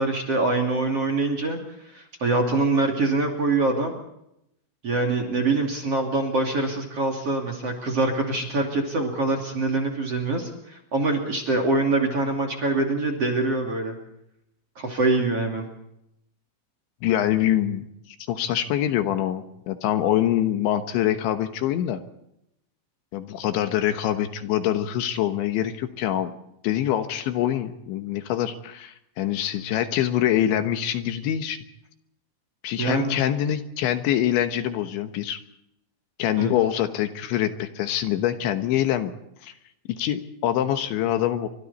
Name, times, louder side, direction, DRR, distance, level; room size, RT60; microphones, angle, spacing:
voice 1, 0.0-1.6 1.9-3.9 4.8-14.0 14.8-15.7 32.8-33.2 36.4-36.5, right 3 dB, 35° right, 4 dB, 2.9 m, -24 dB
voice 2, 17.0-22.0 23.1-26.3 26.6-31.6 32.6-35.4 36.2-39.1 39.4-39.5 39.9-41.5, left 11 dB, 75° left, 8 dB, 3.3 m, -25 dB
29.5 x 25.0 x 4.2 m, 0.81 s
omnidirectional pair, 5.7 m